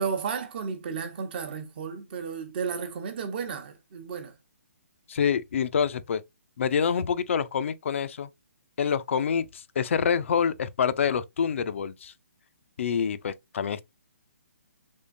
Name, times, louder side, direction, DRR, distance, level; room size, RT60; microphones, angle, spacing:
voice 1, 0.0-4.3, right 6 dB, 40° right, 0.8 m, -33 dB
voice 2, 5.1-6.2 6.6-8.3 8.8-12.1 12.8-13.8, left 7 dB, 55° left, 0.4 m, -26 dB
3.6 x 3.3 x 2.5 m
hypercardioid pair, 155°, 8 cm